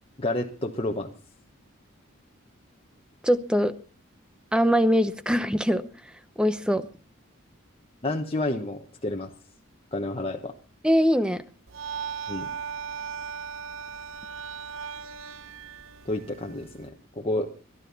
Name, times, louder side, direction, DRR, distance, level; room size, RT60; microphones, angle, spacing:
voice 1, 0.2-1.1 8.0-9.3 9.9-10.5 12.3-12.5 16.0-17.5, left 2 dB, 30° left, 1 dB, 1.1 m, -30 dB
voice 2, 3.2-3.7 4.5-5.8 6.4-6.9 10.8-11.4, equal, 5° right, 11 dB, 0.8 m, -22 dB
sound 1, 11.7-16.9, right 7 dB, 70° right, 0.9 m, -37 dB
22.0 x 12.5 x 4.1 m, 0.36 s
head